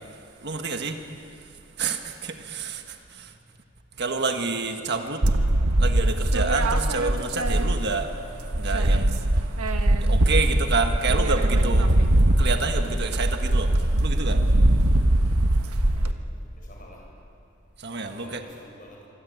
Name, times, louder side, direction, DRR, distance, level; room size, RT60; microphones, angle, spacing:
voice 1, 0.4-1.0 1.8-3.3 4.0-5.2 5.8-8.2 8.5-9.2 10.0-11.9 12.4-13.7 14.0-14.4 17.8-18.4, right 4 dB, 50° right, 5 dB, 1.6 m, -28 dB
voice 2, 4.9-5.3 15.7-16.2 16.6-17.0 18.1-19.0, equal, 40° left, -1 dB, 7.9 m, -48 dB
sound 1, 5.2-8.1 8.4-16.1, right 1 dB, 90° right, 1.5 m, -21 dB
26.0 x 24.0 x 9.4 m, 2.7 s
head